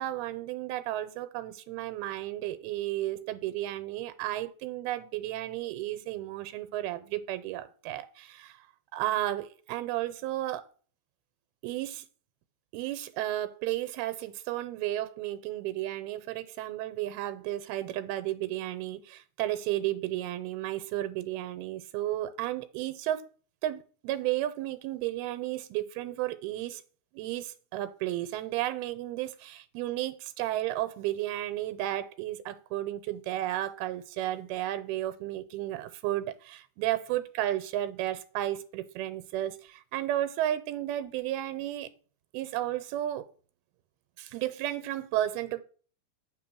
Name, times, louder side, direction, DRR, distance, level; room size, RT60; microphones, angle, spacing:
voice 1, 0.0-8.6 8.9-10.6 11.6-12.1 12.7-23.3 23.6-26.8 27.1-41.9 42.3-43.3 44.2-45.6, right 14 dB, 90° right, 11 dB, 2.7 m, -33 dB
9.4 x 3.8 x 6.2 m, 0.40 s
omnidirectional pair, 4.3 m